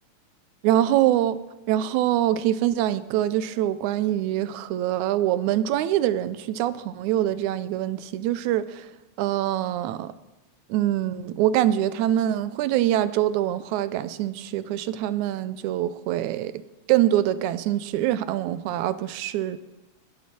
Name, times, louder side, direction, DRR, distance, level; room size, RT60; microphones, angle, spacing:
voice 1, 0.6-1.4 1.7-8.9 9.2-10.1 10.7-16.6 16.9-19.6, right 12 dB, 90° right, 14 dB, 2.0 m, -24 dB
20.0 x 7.8 x 4.3 m, 1.1 s
omnidirectional pair, 3.3 m